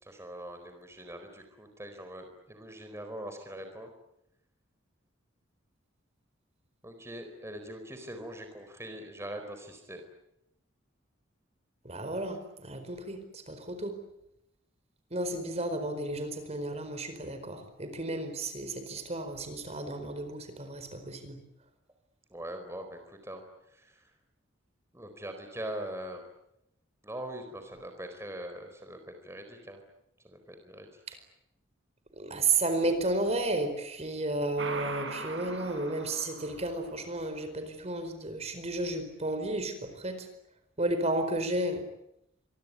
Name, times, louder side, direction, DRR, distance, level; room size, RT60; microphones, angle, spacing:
voice 1, 0.0-3.9 6.8-10.0 22.3-23.4 23.7-24.0 24.9-26.2 27.0-29.8 30.2-31.2, right 1 dB, 15° right, 6 dB, 4.3 m, -42 dB
voice 2, 11.8-13.9 15.1-21.4 32.2-40.3 40.8-41.8, right 2 dB, 35° right, 8 dB, 4.6 m, -32 dB
sound 1, 34.6-37.0, right 3 dB, 65° right, 6.1 m, -40 dB
26.5 x 23.0 x 9.5 m, 0.82 s
head